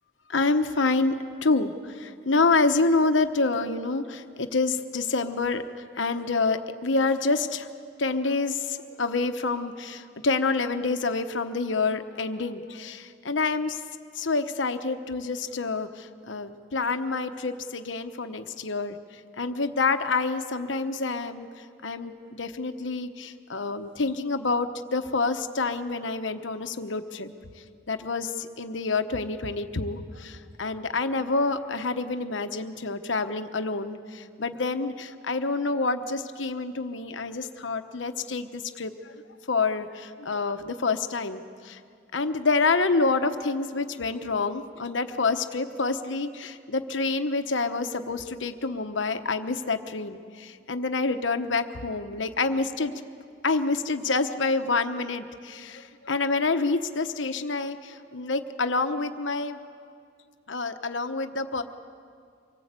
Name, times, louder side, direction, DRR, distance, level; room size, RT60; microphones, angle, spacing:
voice 1, 0.3-1.2 1.4-7.7 8.0-13.8 14.1-19.0 19.4-21.5 21.8-27.3 27.9-39.1 39.5-41.8 42.1-52.9 53.4-59.6 60.5-61.6, left 3 dB, 85° left, 8 dB, 1.1 m, -27 dB
25.0 x 19.0 x 8.3 m, 2.3 s
head